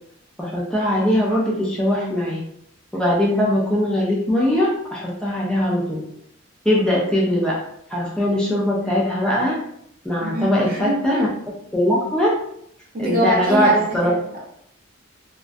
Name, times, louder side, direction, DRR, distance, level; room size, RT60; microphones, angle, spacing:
voice 1, 0.4-2.4 2.9-6.0 6.6-7.6 7.9-9.6 10.0-11.3 11.7-12.3 13.0-14.1, equal, 5° left, -5 dB, 0.4 m, -20 dB
voice 2, 10.2-11.3 12.9-14.4, equal, 45° right, -2 dB, 0.7 m, -24 dB
2.4 x 2.1 x 2.4 m, 0.72 s
head